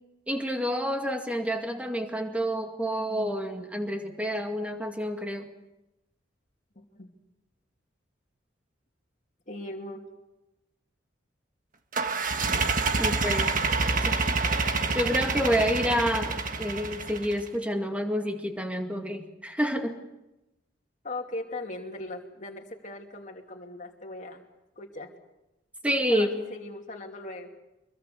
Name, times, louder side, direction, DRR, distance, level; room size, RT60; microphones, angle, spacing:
voice 1, 0.3-5.5 12.9-13.5 14.0-14.4 14.9-20.0 25.8-26.3, equal, 5° right, 4 dB, 2.1 m, -29 dB
voice 2, 6.7-7.1 9.5-10.0 21.0-24.4 24.8-25.1 26.1-27.5, left 2 dB, 40° left, 2 dB, 2.8 m, -39 dB
sound 1, 11.9-17.5, right 4 dB, 45° right, 1.6 m, -27 dB
24.0 x 22.5 x 6.9 m, 0.98 s
head